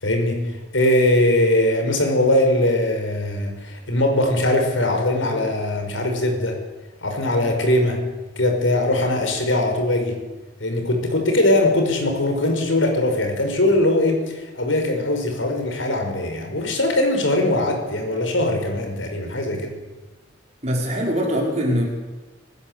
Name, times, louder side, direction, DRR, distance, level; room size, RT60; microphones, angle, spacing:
voice 1, 0.0-6.6 7.0-8.0 8.4-10.2 10.6-19.7, left 1 dB, 80° left, 4 dB, 5.6 m, -21 dB
voice 2, 20.6-21.8, equal, 35° right, -1 dB, 5.4 m, -22 dB
25.5 x 15.0 x 8.4 m, 1.2 s
head